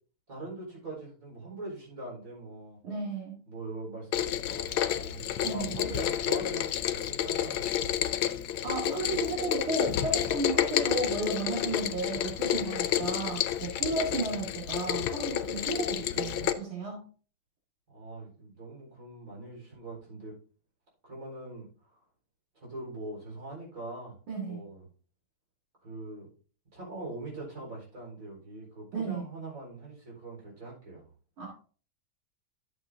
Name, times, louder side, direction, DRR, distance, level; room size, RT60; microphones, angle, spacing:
voice 1, 0.3-2.8 3.5-8.0 17.9-20.3 21.0-22.0 22.5-24.2 24.5-24.8 25.8-26.3 26.7-31.1, right 2 dB, 40° right, -4 dB, 4.7 m, -42 dB
voice 2, 2.8-3.4 5.4-6.0 8.6-17.1 24.3-24.6 28.9-29.2 31.4-31.5, right 2 dB, 75° right, -3 dB, 2.8 m, -33 dB
Rain, 4.1-16.5, left 11 dB, 75° left, 1.4 m, -30 dB
11.5 x 7.5 x 2.7 m, 0.40 s
omnidirectional pair, 2.3 m